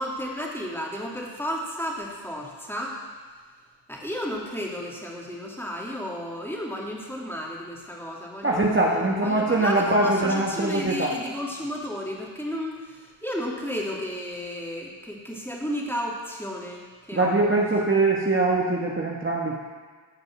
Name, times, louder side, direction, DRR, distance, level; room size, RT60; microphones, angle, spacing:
voice 1, 0.0-3.0 3.9-17.3, equal, 5° left, -3 dB, 2.6 m, -33 dB
voice 2, 8.4-11.1 17.1-19.6, right 2 dB, 25° right, -3 dB, 1.3 m, -22 dB
14.5 x 5.3 x 6.1 m, 1.5 s
cardioid pair, 40°, 46 cm